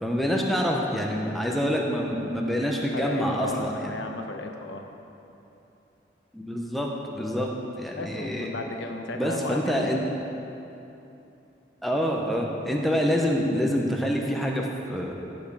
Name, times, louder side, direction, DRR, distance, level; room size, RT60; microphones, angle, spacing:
voice 1, 0.0-3.9 6.3-8.5 9.1-10.0 11.8-15.2, equal, ahead, -1 dB, 0.8 m, -26 dB
voice 2, 2.9-4.8 7.9-9.9 12.9-13.1, left 2 dB, 85° left, 3 dB, 0.9 m, -35 dB
15.0 x 5.3 x 5.4 m, 2.9 s
head